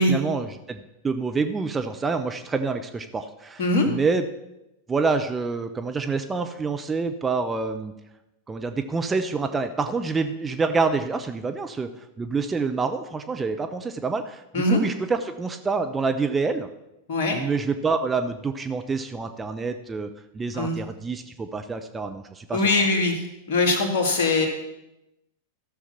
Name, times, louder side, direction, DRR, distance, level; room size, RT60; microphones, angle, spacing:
voice 1, 0.0-4.3 4.9-7.9 8.5-11.9 12.2-16.7 17.3-20.1 20.3-22.9, right 4 dB, 15° right, 7 dB, 0.7 m, -27 dB
voice 2, 22.5-23.2 23.5-24.5, left 2 dB, 55° left, 3 dB, 2.2 m, -21 dB
14.0 x 6.4 x 5.8 m, 0.91 s
figure-of-eight pair, 90°, 0 cm